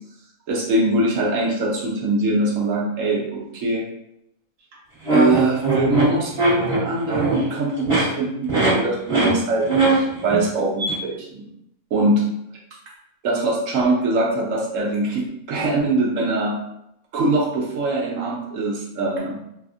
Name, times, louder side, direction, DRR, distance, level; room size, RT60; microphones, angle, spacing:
voice 1, 0.5-3.9 5.1-11.4 11.9-12.2 13.2-16.6 17.1-19.4, right 2 dB, 70° right, -3 dB, 1.0 m, -22 dB
sound 1, 5.0-7.5 7.8-8.0 8.5-8.7 9.1-9.3 9.6-10.4 10.8-10.9, right 3 dB, 20° right, 1.4 m, -20 dB
3.4 x 2.4 x 2.4 m, 0.79 s
omnidirectional pair, 1.5 m